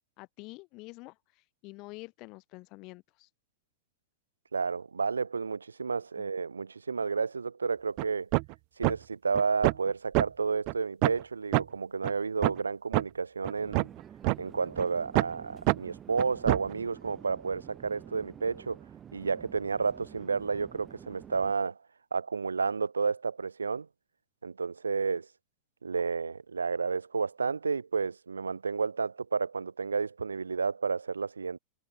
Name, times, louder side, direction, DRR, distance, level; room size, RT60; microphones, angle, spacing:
voice 1, 0.2-3.3 6.2-6.3, left 24 dB, 40° left, 4.5 m, -48 dB
voice 2, 4.5-8.3 8.8-13.9 14.4-18.8 19.1-21.8 22.1-23.9 24.4-25.3 25.8-31.6, right 5 dB, 75° right, 0.8 m, -31 dB
sound 1, 8.0-8.1 8.3-8.5 8.8-9.0 9.3-9.9 10.1-10.3 10.7-10.8 11.0-11.2 11.5-11.6 12.0-12.1 12.4-12.6 12.9-13.0 13.4-14.4 14.8-14.9 15.1-15.3 15.7-15.8 16.2-16.7, right 40 dB or more, 45° right, 0.8 m, -25 dB
Conversation / Chatter / Fixed-wing aircraft airplane, 13.6-21.5, right 9 dB, 25° right, 4.1 m, -50 dB
figure-of-eight pair, 90°, 0 cm